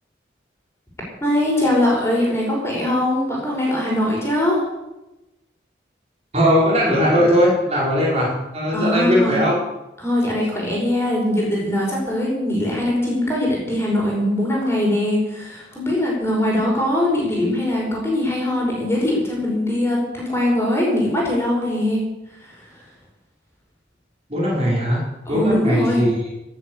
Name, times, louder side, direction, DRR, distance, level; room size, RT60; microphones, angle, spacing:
voice 1, 1.2-4.6 8.7-9.5 10.0-22.0 25.3-26.1, left 1 dB, 15° left, -3 dB, 5.6 m, -21 dB
voice 2, 6.3-9.6 24.3-25.0 25.3-26.3, equal, 35° right, -4 dB, 5.1 m, -19 dB
17.5 x 7.9 x 8.1 m, 0.98 s
head